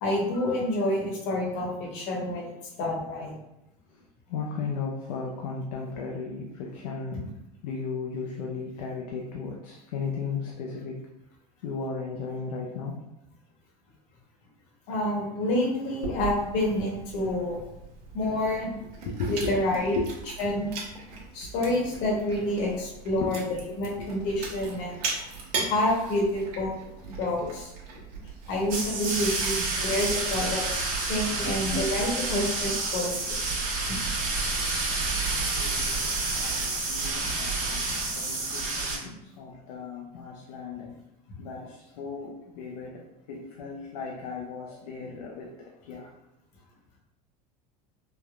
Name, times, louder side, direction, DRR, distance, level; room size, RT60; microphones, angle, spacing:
voice 1, 0.0-2.5 2.8-3.3 14.9-17.6 18.1-18.7 19.3-19.9 20.4-20.7 21.3-23.4 23.7-25.0 25.6-27.7 28.5-33.6 33.9-34.0, left 1 dB, 60° left, -2 dB, 1.0 m, -28 dB
voice 2, 4.3-7.3 7.6-11.0 11.6-13.0 19.1-20.2 23.2-23.3 24.0-24.1 35.5-41.0 41.4-46.1, left 4 dB, 85° left, -1 dB, 0.5 m, -36 dB
Chewing mastication, 16.0-31.8, right 4 dB, 75° right, 0.9 m, -39 dB
sound 1, 28.7-39.0, right 3 dB, 40° right, 1.0 m, -29 dB
3.3 x 2.1 x 2.3 m, 0.91 s
supercardioid pair, 110°, 20 cm